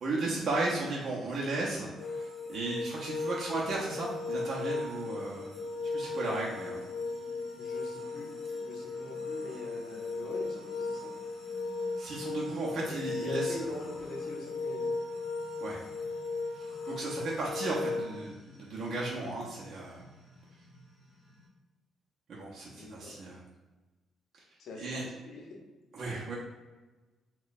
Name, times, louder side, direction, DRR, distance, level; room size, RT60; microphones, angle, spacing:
voice 1, 0.0-5.5 5.9-6.8 12.0-13.6 15.6-15.8 16.6-20.0 22.3-23.4 24.8-25.0 25.9-26.4, right 2 dB, 45° right, -5 dB, 0.6 m, -35 dB
sound 1, 2.0-18.0, left 3 dB, 15° left, 1.0 m, -37 dB
sound 2, 3.8-21.5, left 1 dB, 5° right, 1.4 m, -55 dB
voice 2, 7.5-8.3 8.6-11.1 12.9-14.9 22.8-23.2 24.6-25.6, left 2 dB, 60° left, -1 dB, 0.7 m, -43 dB
3.0 x 2.2 x 4.0 m, 1.2 s
cardioid pair, 165°, 0 cm